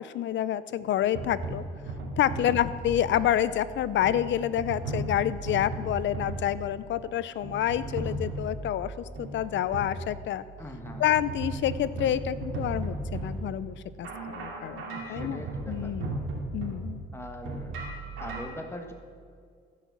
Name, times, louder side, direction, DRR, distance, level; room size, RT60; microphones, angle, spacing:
voice 1, 0.0-1.6 2.2-10.4 11.0-16.2 16.5-17.0, left 11 dB, 70° left, 16 dB, 0.6 m, -28 dB
sound 1, 0.8-18.4, right 2 dB, 90° right, 2.6 m, -37 dB
voice 2, 10.6-11.0 14.9-15.9 17.1-17.9 18.2-18.9, left 1 dB, 10° left, 4 dB, 1.3 m, -41 dB
15.0 x 6.2 x 7.3 m, 2.1 s
cardioid pair, 90°, 20 cm